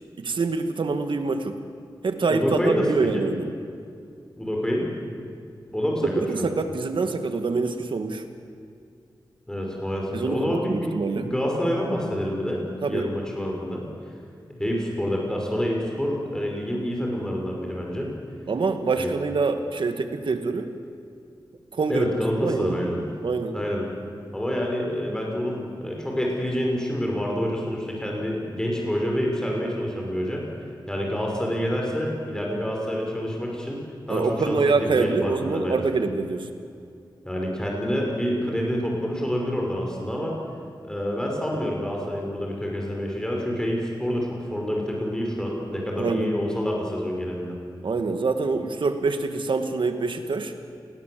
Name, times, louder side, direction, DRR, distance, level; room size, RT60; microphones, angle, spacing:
voice 1, 0.2-1.5 2.0-3.5 6.2-8.2 10.1-11.3 12.8-13.1 18.5-20.7 21.7-22.1 22.4-22.8 23.2-23.5 34.1-36.5 46.0-46.3 47.8-50.5, right 4 dB, 75° right, 7 dB, 2.1 m, -25 dB
voice 2, 2.3-3.3 4.3-4.9 5.7-6.5 9.5-13.8 14.5-18.1 19.0-19.1 21.9-23.0 23.5-23.8 24.3-30.4 30.9-33.8 34.1-35.8 37.3-40.3 40.8-47.6, equal, 10° left, -1 dB, 5.5 m, -27 dB
30.0 x 20.0 x 7.8 m, 2.4 s
wide cardioid pair, 120°, 8 cm